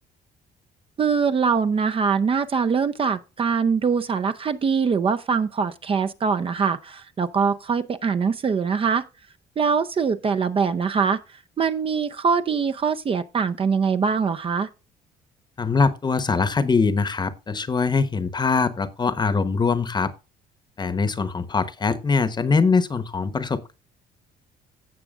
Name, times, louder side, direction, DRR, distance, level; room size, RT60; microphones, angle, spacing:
voice 1, 1.0-9.1 9.6-11.2 11.6-14.7, right 5 dB, 35° right, 0.6 m, -23 dB
voice 2, 15.6-20.1 20.8-23.7, left 4 dB, 25° left, 1.0 m, -22 dB
16.5 x 6.0 x 2.4 m
cardioid pair, 110°, 17 cm